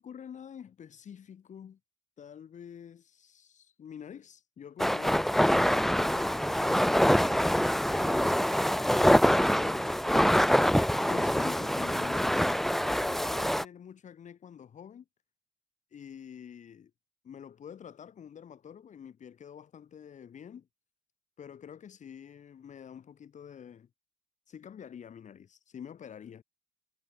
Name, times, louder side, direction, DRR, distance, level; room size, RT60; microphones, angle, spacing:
voice 1, 0.0-1.8 2.2-7.1 10.9-15.0 15.9-16.9 17.2-20.7 21.4-23.9 24.5-26.4, left 8 dB, 45° left, 6.4 m, -47 dB
sound 1, 4.8-13.6, equal, ahead, 0.9 m, -25 dB
cardioid pair, 110°, 17 cm